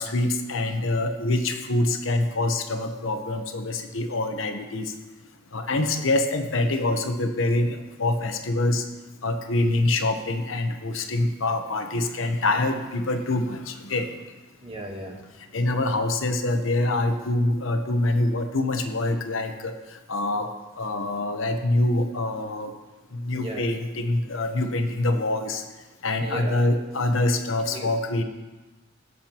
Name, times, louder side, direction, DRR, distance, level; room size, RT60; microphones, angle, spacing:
voice 1, 0.0-4.9 5.5-8.8 9.2-14.1 15.5-19.7 20.1-20.5 20.8-22.7 23.1-25.6 26.0-28.2, left 2 dB, 75° left, 5 dB, 1.0 m, -25 dB
voice 2, 14.6-15.2 23.3-23.7 26.2-26.6 27.7-27.9, right 1 dB, 25° right, 2 dB, 1.3 m, -36 dB
17.0 x 7.9 x 3.0 m, 1.2 s
head